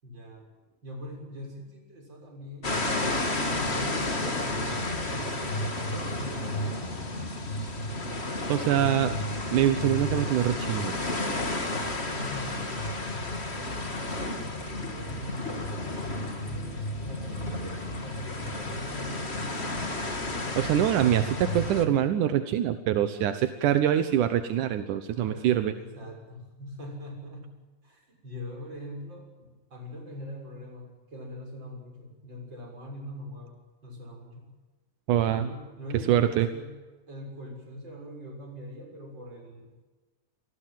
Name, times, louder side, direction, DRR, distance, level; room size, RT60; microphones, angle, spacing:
voice 1, 0.0-0.5 0.8-7.2 8.7-9.1 12.1-12.8 14.7-19.6 25.1-27.5 27.8-33.5 33.8-34.5 35.3-36.7 37.1-39.7, left 1 dB, 35° right, 1 dB, 7.1 m, -42 dB
sound 1, 2.6-21.9, left 2 dB, 20° left, 2.4 m, -32 dB
voice 2, 8.5-9.1 9.5-11.0 20.6-25.7 35.1-35.5 36.1-36.5, right 11 dB, 80° right, 10 dB, 2.6 m, -24 dB
28.0 x 19.5 x 7.6 m, 1.3 s
omnidirectional pair, 3.5 m